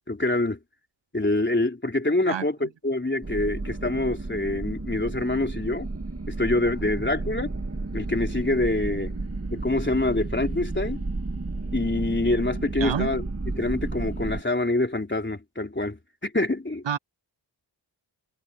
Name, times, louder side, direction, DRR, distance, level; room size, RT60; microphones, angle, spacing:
voice 1, 0.1-0.6 1.1-5.9 6.3-7.5 7.9-9.1 9.5-11.0 11.7-13.2 13.6-16.8, left 2 dB, 25° left, 3.7 m, -26 dB
sound 1, 3.2-14.4, right 2 dB, 30° right, 2.2 m, -32 dB
voice 2, 12.8-13.1 16.9-17.0, right 9 dB, 70° right, 0.8 m, -27 dB
wide cardioid pair, 60°, 46 cm